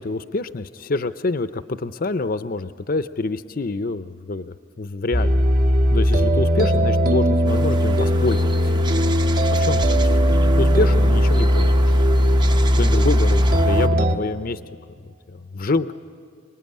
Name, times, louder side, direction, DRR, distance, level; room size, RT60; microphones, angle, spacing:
voice 1, 0.0-5.4 5.9-8.6 9.5-10.0 10.4-11.8 12.8-14.6 15.3-15.9, left 3 dB, 50° left, 11 dB, 0.6 m, -26 dB
sound 1, 5.1-14.2, equal, 50° right, 1.5 m, -18 dB
sound 2, 7.5-13.9, right 3 dB, 25° right, 0.8 m, -33 dB
27.5 x 20.0 x 9.5 m, 2.1 s
head